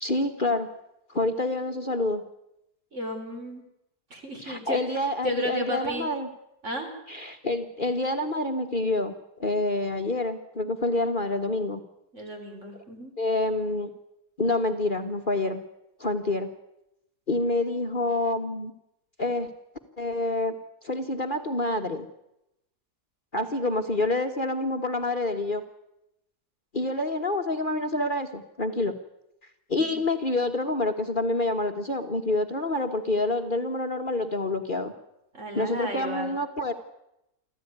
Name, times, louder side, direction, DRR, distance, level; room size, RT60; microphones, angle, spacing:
voice 1, 0.0-0.7 1.1-2.2 4.4-6.3 7.1-9.1 9.4-11.8 13.2-13.9 14.4-15.6 16.0-16.5 17.3-18.7 19.2-19.5 20.0-20.5 20.8-22.1 23.3-25.6 26.7-28.9 29.7-34.9 35.5-36.7, left 2 dB, 35° left, 4 dB, 1.4 m, -27 dB
voice 2, 2.9-3.6 4.1-6.1 6.6-6.9 12.1-13.1 29.8-30.0 35.3-36.3, equal, 45° right, 3 dB, 4.5 m, -33 dB
25.5 x 14.5 x 9.4 m, 0.85 s
omnidirectional pair, 1.7 m